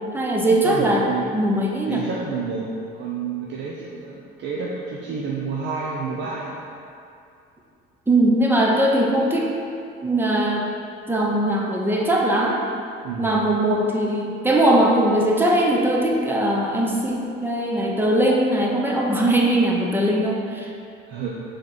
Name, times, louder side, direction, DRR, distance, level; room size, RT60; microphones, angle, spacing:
voice 1, 0.1-1.1 1.3-2.0 8.1-9.5 10.0-10.7 11.1-12.6 13.2-20.7, right 1 dB, 10° right, -2 dB, 0.9 m, -20 dB
voice 2, 0.6-1.2 1.9-6.6 13.0-13.3 21.1-21.3, right 5 dB, 65° right, -4 dB, 0.8 m, -29 dB
5.2 x 4.1 x 6.0 m, 2.5 s
cardioid pair, 120°, 21 cm